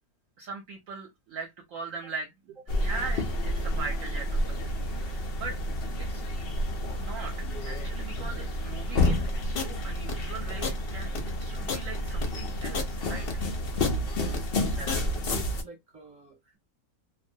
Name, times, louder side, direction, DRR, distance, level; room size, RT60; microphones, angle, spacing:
voice 1, 0.4-2.3 2.8-5.6 6.0-6.2 7.0-11.1 11.4-13.3 14.7-15.1, right 4 dB, 70° right, 0.9 m, -40 dB
sound 1, 2.7-15.6, left 1 dB, 90° left, 0.5 m, -30 dB
sound 2, 9.0-15.3, left 4 dB, 50° left, 0.7 m, -34 dB
voice 2, 14.6-15.0 15.3-16.6, right 5 dB, 20° right, 1.0 m, -47 dB
2.4 x 2.1 x 2.6 m
omnidirectional pair, 1.6 m